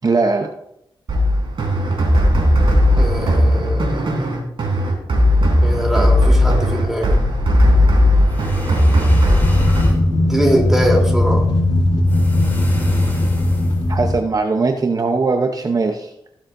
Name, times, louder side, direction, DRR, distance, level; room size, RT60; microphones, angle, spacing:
voice 1, 0.0-0.5 13.9-16.1, right 3 dB, 45° right, 4 dB, 0.8 m, -19 dB
sound 1, 1.1-9.8, left 1 dB, 70° right, 3.5 m, -16 dB
voice 2, 2.9-4.2 5.6-7.2 10.2-11.4, equal, 5° right, -1 dB, 3.3 m, -22 dB
sound 2, 7.4-14.1, left 1 dB, 55° left, 3.1 m, -19 dB
sound 3, 8.2-10.0 12.1-14.0, left 1 dB, 20° left, 3.0 m, -31 dB
17.0 x 7.4 x 2.6 m, 0.80 s
wide cardioid pair, 85°, 9 cm